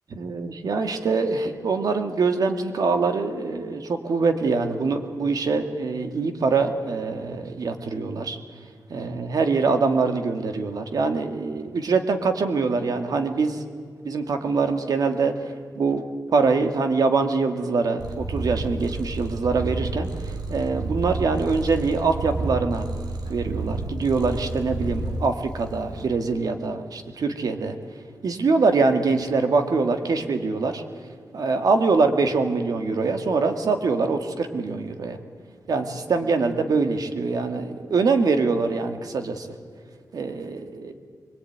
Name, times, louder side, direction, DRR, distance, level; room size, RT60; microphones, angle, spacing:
voice 1, 0.1-8.4 8.9-13.6 14.0-15.3 15.8-16.0 16.3-22.9 23.3-27.8 28.2-30.8 31.3-35.2 35.7-39.5 40.1-40.9, right 4 dB, 65° right, 6 dB, 2.1 m, -24 dB
Purr, 18.0-26.1, right 2 dB, 90° right, 3.3 m, -30 dB
24.0 x 22.0 x 9.6 m, 2.1 s
wide cardioid pair, 165°, 7 cm